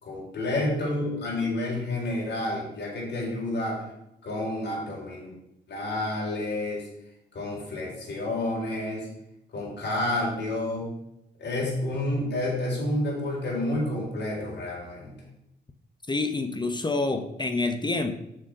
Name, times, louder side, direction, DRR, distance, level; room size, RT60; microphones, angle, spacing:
voice 1, 0.0-3.8 4.2-5.3 5.7-6.9 7.3-9.1 9.5-10.9 11.4-15.2, left 1 dB, 65° left, -4 dB, 4.1 m, -29 dB
voice 2, 16.1-18.1, left 3 dB, 25° left, 7 dB, 1.1 m, -27 dB
7.2 x 6.8 x 5.9 m, 0.83 s
cardioid pair, 70°, 19 cm